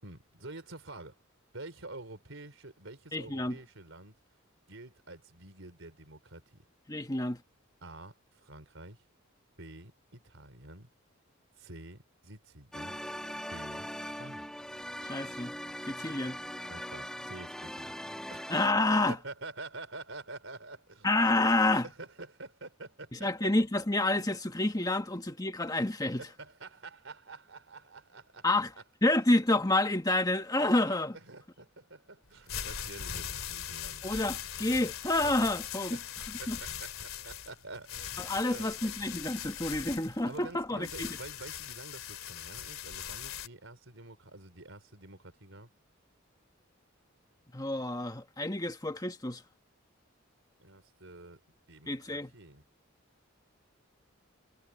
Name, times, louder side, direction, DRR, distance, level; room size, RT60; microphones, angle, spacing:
voice 1, 0.0-1.2 1.5-4.2 4.7-6.6 7.8-9.0 9.6-10.9 11.6-13.0 13.5-14.5 16.7-17.9 18.3-18.5 19.1-21.1 21.8-23.5 26.2-28.5 31.1-34.0 34.8-34.9 35.9-36.1 36.4-38.2 38.4-38.8 40.2-45.7 50.6-51.4 51.7-52.6, right 2 dB, 70° right, 4.4 m, -48 dB
voice 2, 3.1-3.6 6.9-7.4 15.0-15.5 15.9-16.4 18.5-19.2 21.0-21.9 23.1-26.2 28.4-28.7 29.0-31.2 34.0-36.0 36.5-36.6 38.2-41.1 47.5-49.4 51.9-52.3, left 2 dB, 20° left, 1.5 m, -29 dB
sound 1, 12.7-18.7, equal, 5° left, 1.6 m, -41 dB
sound 2, 32.3-43.5, left 9 dB, 90° left, 2.9 m, -40 dB
head